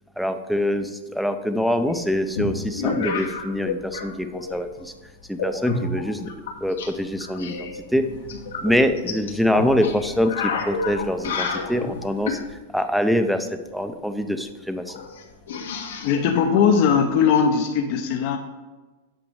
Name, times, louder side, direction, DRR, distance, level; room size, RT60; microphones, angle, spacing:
voice 1, 0.2-4.9 5.3-6.3 6.6-8.0 8.6-12.4 12.7-14.9, equal, ahead, 8 dB, 0.5 m, -24 dB
sound 1, 1.9-4.1 4.3-4.8 5.4-6.9 7.2-12.5 14.1-14.2 14.4-14.5 14.9-17.4, left 4 dB, 85° left, 1.5 m, -30 dB
voice 2, 16.0-18.4, left 6 dB, 45° left, 3 dB, 0.7 m, -19 dB
8.8 x 5.3 x 4.7 m, 1.2 s
supercardioid pair, 150°, 0 cm